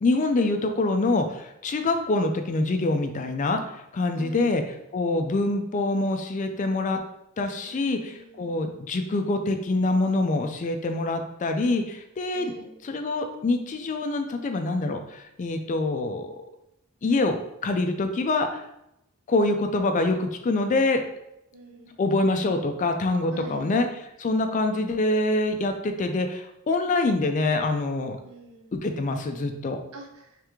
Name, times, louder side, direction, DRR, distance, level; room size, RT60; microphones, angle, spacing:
voice 1, 0.0-4.6 4.9-7.0 7.4-12.5 12.8-16.4 17.0-18.6 19.3-21.0 22.0-23.9 24.2-28.2 28.7-29.8, left 2 dB, 35° left, 6 dB, 0.3 m, -25 dB
voice 2, 4.1-4.5 7.6-8.5 12.3-12.7 21.5-22.0 23.3-23.7 28.2-28.7 29.9-30.4, right 2 dB, 70° right, 2 dB, 0.6 m, -44 dB
3.5 x 3.3 x 3.0 m, 0.82 s
head